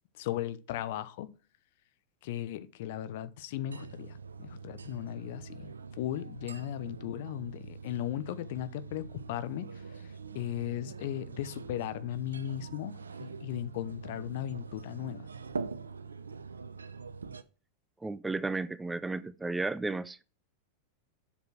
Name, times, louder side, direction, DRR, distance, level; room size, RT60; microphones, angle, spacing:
voice 1, 0.2-1.3 2.2-9.7 10.3-15.3, left 12 dB, 50° left, 0.8 m, -37 dB
sound 1, 3.7-17.4, right 5 dB, 75° right, 0.7 m, -44 dB
voice 2, 18.0-20.2, right 3 dB, 10° right, 0.4 m, -33 dB
7.8 x 7.1 x 5.9 m
figure-of-eight pair, 90°, 0 cm